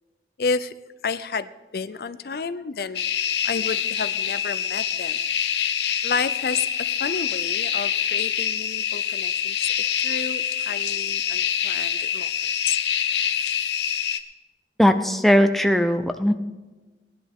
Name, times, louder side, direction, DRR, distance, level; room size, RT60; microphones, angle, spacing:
voice 1, 0.4-0.7 1.0-5.2 6.0-9.7 10.0-12.8, left 5 dB, 60° left, 13 dB, 0.4 m, -31 dB
sound 1, 2.9-14.2, left 9 dB, 80° left, 0.8 m, -26 dB
voice 2, 14.8-16.3, equal, ahead, 6 dB, 0.5 m, -18 dB
19.5 x 10.5 x 3.6 m, 1.3 s
head